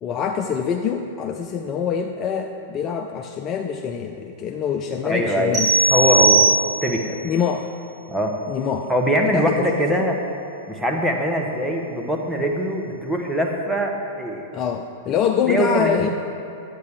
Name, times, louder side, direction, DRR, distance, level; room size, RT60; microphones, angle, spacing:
voice 1, 0.0-5.7 7.2-7.7 8.5-8.9 9.3-10.1 14.5-16.1, left 7 dB, 30° left, 4 dB, 0.4 m, -25 dB
voice 2, 5.0-5.6 5.9-6.5 6.8-7.2 8.1-8.3 8.9-10.2 10.7-14.4 15.5-16.1, equal, ahead, 0 dB, 1.1 m, -22 dB
sound 1, 5.5-7.1, right 3 dB, 25° right, 2.1 m, -18 dB
12.0 x 8.1 x 3.4 m, 2.7 s
figure-of-eight pair, 95°, 0 cm